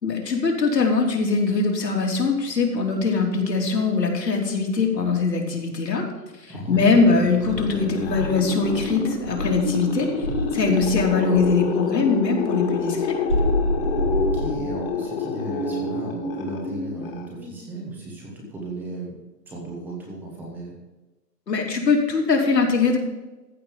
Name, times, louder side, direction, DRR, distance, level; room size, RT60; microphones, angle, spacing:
voice 1, 0.0-6.0 6.7-10.1 10.5-13.2 21.5-23.0, left 4 dB, 75° left, 1 dB, 3.4 m, -21 dB
sound 1, 6.5-17.7, left 4 dB, 35° left, 2.1 m, -28 dB
voice 2, 6.5-6.9 14.1-19.1 19.5-20.7, right 1 dB, 5° right, -1 dB, 1.0 m, -35 dB
Insect, 7.5-9.7 10.2-11.6 13.3-15.0, equal, 20° right, 0.7 m, -27 dB
14.5 x 5.3 x 7.2 m, 1.1 s
hypercardioid pair, 160°, 50 cm